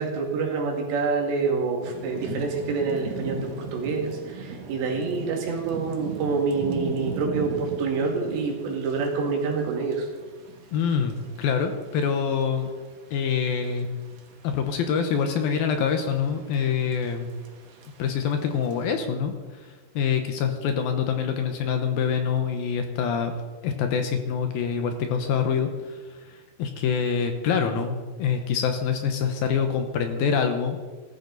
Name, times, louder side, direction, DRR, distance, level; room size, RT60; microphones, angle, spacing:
voice 1, 0.0-10.1, right 4 dB, 85° right, 0 dB, 4.5 m, -27 dB
Thunder / Rain, 1.8-18.8, right 4 dB, 65° right, 1.7 m, -39 dB
voice 2, 10.7-12.7 13.1-13.9 14.4-17.3 18.0-23.3 23.6-26.3 26.6-30.8, left 6 dB, 70° left, 5 dB, 2.5 m, -25 dB
17.5 x 13.5 x 4.0 m, 1.4 s
omnidirectional pair, 4.9 m